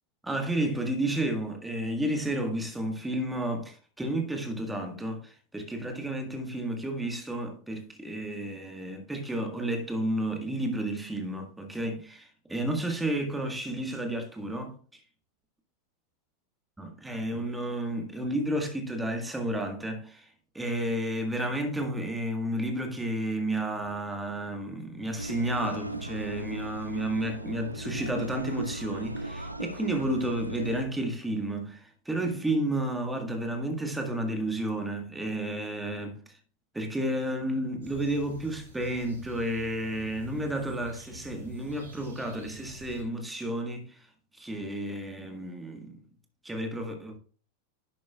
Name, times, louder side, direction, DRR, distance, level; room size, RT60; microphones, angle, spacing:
voice 1, 0.2-15.0 16.8-20.3 20.5-36.4 36.7-44.1 44.3-46.0 46.4-47.2, right 1 dB, 5° right, 1.7 m, -31 dB
sound 1, 25.2-30.8, right 1 dB, 85° right, 0.7 m, -37 dB
sound 2, 37.8-43.0, right 2 dB, 70° right, 3.3 m, -48 dB
11.0 x 7.0 x 2.4 m
figure-of-eight pair, 90°, 0 cm